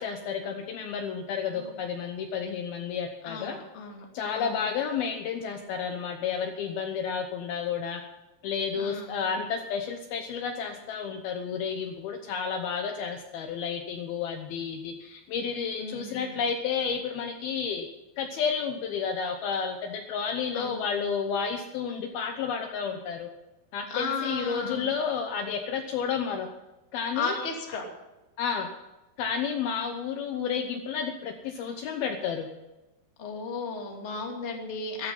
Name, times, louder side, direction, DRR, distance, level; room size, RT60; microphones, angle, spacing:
voice 1, 0.0-3.6 4.1-8.0 8.4-17.9 18.2-23.3 23.7-26.5 26.9-27.4 28.4-28.7 29.2-32.5, left 6 dB, 70° left, 5 dB, 2.5 m, -31 dB
voice 2, 1.4-1.8 3.2-4.0 4.3-4.6 8.7-9.3 15.8-16.3 20.5-20.8 23.9-24.9 27.1-27.8 33.2-35.1, left 4 dB, 25° left, 1 dB, 1.6 m, -34 dB
14.0 x 12.5 x 5.6 m, 1.0 s
omnidirectional pair, 5.2 m